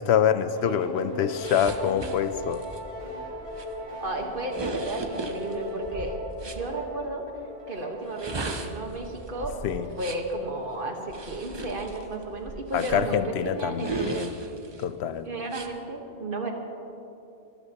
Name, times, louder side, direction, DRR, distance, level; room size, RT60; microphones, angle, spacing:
voice 1, 0.0-2.6 9.6-9.9 12.7-14.3 14.8-15.3, left 8 dB, 80° left, 13 dB, 0.8 m, -25 dB
sound 1, 0.6-10.0, left 1 dB, 75° right, 3.7 m, -39 dB
sound 2, 1.4-6.7 8.0-10.3 11.1-13.2 13.8-14.8 15.5-15.7, right 3 dB, 30° right, 0.7 m, -37 dB
voice 2, 4.0-6.1 6.4-7.2 7.7-9.5 10.0-14.3 15.2-16.5, right 2 dB, 55° right, 2 dB, 1.5 m, -33 dB
23.5 x 13.0 x 2.9 m, 2.9 s
omnidirectional pair, 1.1 m